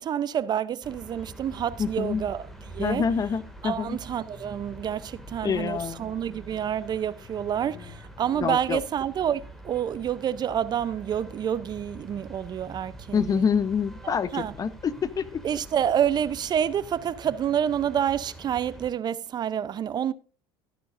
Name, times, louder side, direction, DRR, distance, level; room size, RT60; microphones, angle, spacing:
voice 1, 0.0-3.1 3.6-13.4 14.0-14.5 15.4-20.1, right 9 dB, 35° right, 0.6 m, -28 dB
sound 1, 0.8-18.9, right 1 dB, 5° left, 2.0 m, -45 dB
voice 2, 1.8-2.2 2.8-4.0 5.4-6.1 8.4-8.8 13.1-15.4, left 6 dB, 30° left, 0.7 m, -27 dB
13.5 x 9.5 x 2.5 m
supercardioid pair, 100°, 12 cm